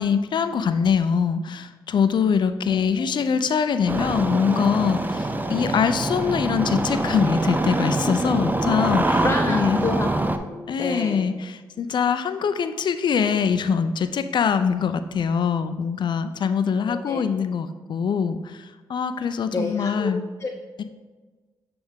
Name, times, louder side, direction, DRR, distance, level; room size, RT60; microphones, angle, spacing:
voice 1, 0.0-9.9 10.7-20.2 20.8-20.9, left 6 dB, 65° left, 10 dB, 0.4 m, -23 dB
Engine starting, 3.9-10.4, right 2 dB, 20° right, 0.5 m, -25 dB
voice 2, 5.5-5.8 9.2-11.3 16.9-17.2 19.5-20.1 20.4-20.5, left 2 dB, 30° left, 1 dB, 0.7 m, -29 dB
8.1 x 3.4 x 3.5 m, 1.3 s
supercardioid pair, 55°, 9 cm